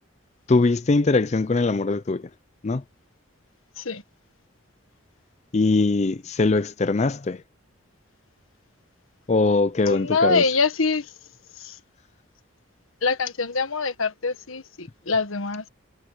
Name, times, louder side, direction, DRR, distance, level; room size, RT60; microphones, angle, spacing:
voice 1, 0.5-2.3 2.6-2.8 5.5-7.4 9.3-10.4, left 3 dB, 35° left, 0.4 m, -21 dB
voice 2, 9.9-11.1 11.6-11.8 13.0-15.7, left 4 dB, 85° left, 1.5 m, -24 dB
head